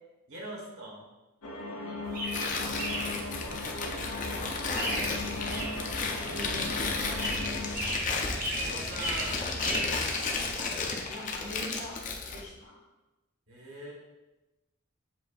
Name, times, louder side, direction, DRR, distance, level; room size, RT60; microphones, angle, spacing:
voice 1, 0.3-1.1 2.9-3.6 6.1-7.4 8.6-9.5 13.5-13.9, right 1 dB, 70° right, -3 dB, 1.3 m, -43 dB
sound 1, 1.4-7.8, left 2 dB, 90° left, 0.7 m, -38 dB
sound 2, 2.0-10.1, right 1 dB, 40° right, 0.7 m, -37 dB
Tearing, 2.3-12.5, left 4 dB, 35° left, 0.4 m, -33 dB
voice 2, 4.8-5.8 10.7-12.0 12.3-12.8, left 1 dB, 70° left, -3 dB, 1.2 m, -43 dB
7.4 x 2.5 x 2.4 m, 1.1 s
head